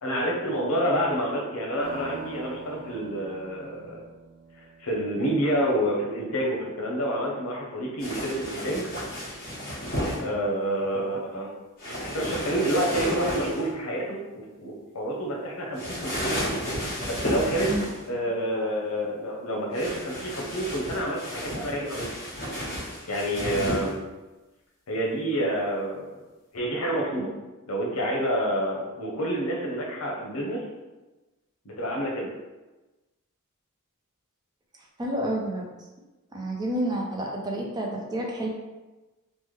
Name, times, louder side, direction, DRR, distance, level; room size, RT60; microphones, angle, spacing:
voice 1, 0.0-4.0 4.8-8.9 10.1-11.5 11.8-16.4 17.0-17.7 18.1-22.2 23.1-24.0 24.9-26.1 26.5-27.3 27.7-30.6 31.6-32.3, equal, 85° left, -1 dB, 0.8 m, -28 dB
sound 1, 1.8-5.6, right 4 dB, 75° right, 0.6 m, -44 dB
sound 2, 8.0-10.2 11.8-13.7 15.7-18.1 19.7-23.9, equal, 45° left, 1.5 m, -32 dB
voice 2, 17.5-17.8 35.0-35.7 36.3-38.5, right 1 dB, 20° right, -2 dB, 0.5 m, -29 dB
3.3 x 2.1 x 3.2 m, 1.1 s
head